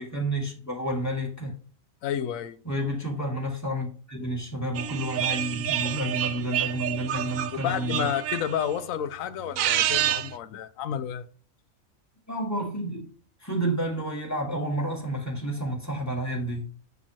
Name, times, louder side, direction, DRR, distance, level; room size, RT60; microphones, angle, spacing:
voice 1, 0.0-1.5 2.6-8.1 12.3-13.1 13.4-16.7, right 1 dB, 10° left, 2.4 m, -30 dB
voice 2, 2.0-2.6 7.5-11.3, left 9 dB, 90° left, 1.0 m, -30 dB
sound 1, 4.7-8.8 9.4-10.4, right 11 dB, 85° right, 1.0 m, -29 dB
10.5 x 3.6 x 3.0 m
omnidirectional pair, 1.4 m